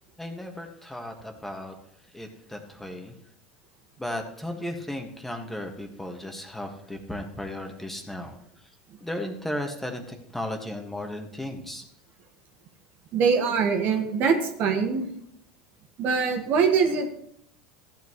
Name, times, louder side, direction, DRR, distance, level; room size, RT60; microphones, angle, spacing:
voice 1, 0.2-1.8 2.1-3.1 4.0-8.4 9.0-11.9, left 1 dB, 5° left, 3 dB, 1.8 m, -35 dB
voice 2, 13.1-15.1 16.0-17.1, right 5 dB, 55° right, 4 dB, 1.8 m, -23 dB
14.0 x 8.4 x 3.2 m, 0.72 s
hypercardioid pair, 95°, 4 cm